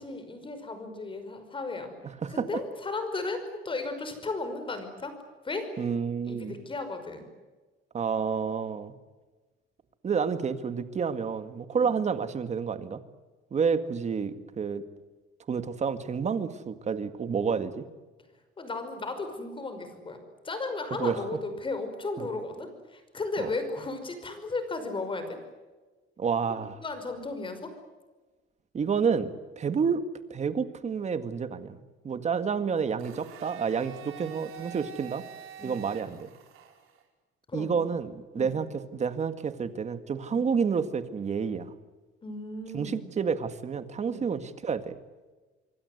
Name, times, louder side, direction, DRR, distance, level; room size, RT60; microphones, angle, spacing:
voice 1, 0.0-1.9 2.3-5.1 5.4-5.8 6.3-7.3 11.7-12.0 18.6-20.2 20.4-25.4 26.5-27.7 35.6-35.8 37.5-37.8 38.4-38.5 40.3-40.5 42.2-43.1 44.1-44.3, left 3 dB, 25° left, 8 dB, 5.5 m, -35 dB
voice 2, 5.8-6.6 7.9-9.0 10.0-13.0 13.5-14.8 15.5-17.8 21.0-21.2 22.2-22.3 23.4-23.5 26.2-26.8 28.7-29.3 29.6-30.0 30.3-35.2 35.6-36.3 37.5-41.7 42.7-45.0, right 6 dB, 35° right, 10 dB, 2.0 m, -29 dB
Domestic sounds home sounds, 33.0-37.0, right 10 dB, 80° right, 5.4 m, -46 dB
26.5 x 23.5 x 8.1 m, 1.2 s
cardioid pair, 150°, 21 cm